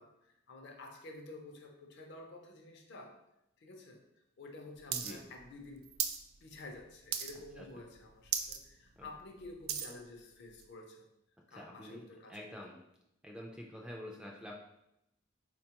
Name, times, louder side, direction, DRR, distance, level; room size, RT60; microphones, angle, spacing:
voice 1, 0.0-3.2 3.6-4.0 4.4-5.8 6.4-11.1 11.5-12.4, left 2 dB, 55° left, 2 dB, 0.5 m, -50 dB
voice 2, 4.9-5.2 7.6-7.7 9.0-9.1 11.5-12.0 12.3-12.8 13.2-14.6, left 1 dB, 5° right, -1 dB, 0.3 m, -47 dB
sound 1, 4.9-5.1 5.4-6.2 6.6-6.8 7.1-7.6 7.9-8.0 8.2-8.6 9.0-10.0 10.6-10.7, right 8 dB, 80° right, 0.3 m, -36 dB
4.3 x 2.3 x 2.8 m, 0.84 s
head